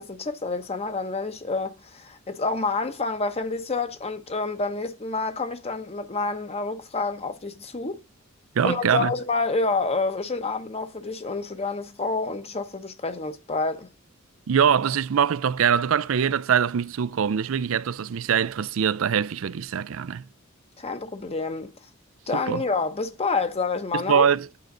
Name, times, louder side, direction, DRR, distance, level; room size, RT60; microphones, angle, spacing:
voice 1, 0.0-8.0 8.6-13.9 20.8-21.7 22.3-24.3, left 3 dB, 30° left, 0.9 m, -28 dB
voice 2, 8.6-9.1 14.5-20.2 22.3-22.6 23.9-24.5, right 7 dB, 70° right, 0.4 m, -23 dB
8.8 x 6.5 x 3.8 m
head